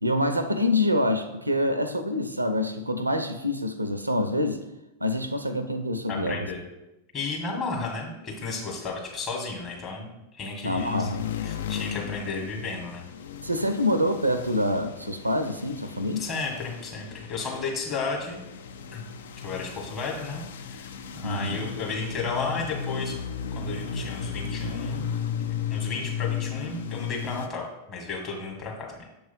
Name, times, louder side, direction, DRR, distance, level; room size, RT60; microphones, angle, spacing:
voice 1, 0.0-4.6 5.0-6.5 10.6-11.3 13.4-16.2 21.2-21.6, left 1 dB, 85° right, 9 dB, 0.5 m, -26 dB
voice 2, 6.1-6.6 7.1-10.1 10.3-11.1 11.4-13.1 16.2-18.4 18.9-19.0 19.4-20.9 21.1-23.1 23.5-25.0 25.7-29.0, left 4 dB, 30° left, -1 dB, 1.7 m, -33 dB
sound 1, 10.8-27.5, left 7 dB, 60° left, 0.4 m, -35 dB
6.9 x 3.0 x 5.5 m, 0.95 s
figure-of-eight pair, 90°, 0 cm